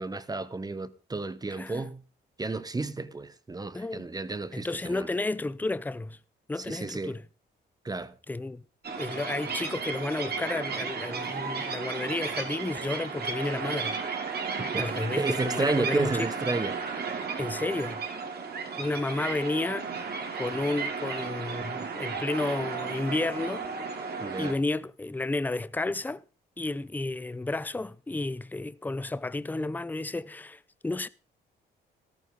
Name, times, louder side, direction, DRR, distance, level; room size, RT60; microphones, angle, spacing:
voice 1, 0.0-2.0 2.4-5.1 6.6-7.2 7.8-8.1 14.6-14.9 15.2-17.1 24.2-24.6, right 3 dB, 20° right, 1.0 m, -32 dB
voice 2, 1.5-1.8 3.7-4.1 4.5-6.2 6.5-7.2 8.3-8.6 9.0-14.0 14.8-16.1 17.4-18.0 18.8-19.9 20.4-23.7 24.4-26.2 26.6-31.1, left 2 dB, 10° left, 0.6 m, -32 dB
sound 1, 8.8-24.5, right 5 dB, 55° right, 3.0 m, -34 dB
14.0 x 13.0 x 3.8 m
cardioid pair, 90°, 20 cm